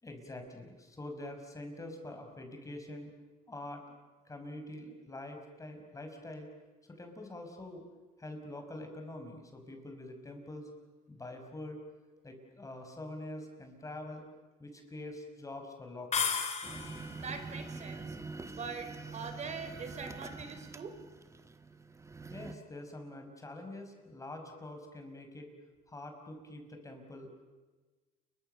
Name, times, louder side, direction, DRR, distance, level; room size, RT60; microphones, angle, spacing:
voice 1, 0.0-3.1 3.5-3.8 4.3-6.5 6.9-7.9 8.2-10.7 11.1-11.8 12.2-14.2 14.6-16.4 22.3-25.5 25.9-27.3, left 1 dB, 20° left, 4 dB, 5.9 m, -45 dB
sound 1, 16.1-17.2, left 6 dB, 40° left, 3.5 m, -33 dB
sound 2, 16.6-22.5, right 4 dB, 15° right, 1.4 m, -45 dB
voice 2, 17.2-18.2 18.5-20.9, right 5 dB, 45° right, 8 dB, 4.6 m, -42 dB
29.5 x 24.0 x 7.0 m, 1.3 s
cardioid pair, 110°, 17 cm